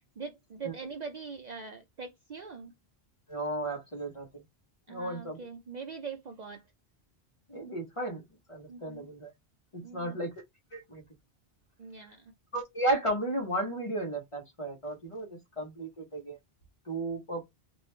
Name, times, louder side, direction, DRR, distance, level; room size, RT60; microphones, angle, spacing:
voice 1, 0.2-2.7 4.9-6.6 8.7-9.1 9.8-10.2 11.8-12.3, right 5 dB, 50° right, 0.5 m, -42 dB
voice 2, 3.3-4.4 4.9-5.4 7.5-8.2 8.5-9.3 9.7-10.3 10.7-11.0 12.5-16.4 16.8-17.4, right 1 dB, 30° left, 0.9 m, -34 dB
3.0 x 2.5 x 3.2 m
omnidirectional pair, 1.1 m